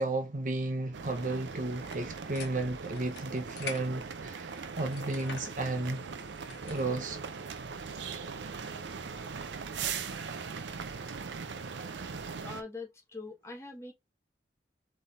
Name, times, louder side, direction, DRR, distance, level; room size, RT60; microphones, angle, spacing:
voice 1, 0.0-6.0 6.6-7.2, right 2 dB, 45° right, 0.8 m, -33 dB
sound 1, 0.9-12.6, right 5 dB, 80° right, 0.6 m, -40 dB
sound 2, 1.8-7.0, left 4 dB, 70° left, 1.2 m, -48 dB
voice 2, 12.4-13.9, left 3 dB, 15° left, 1.1 m, -43 dB
4.0 x 3.5 x 3.6 m
head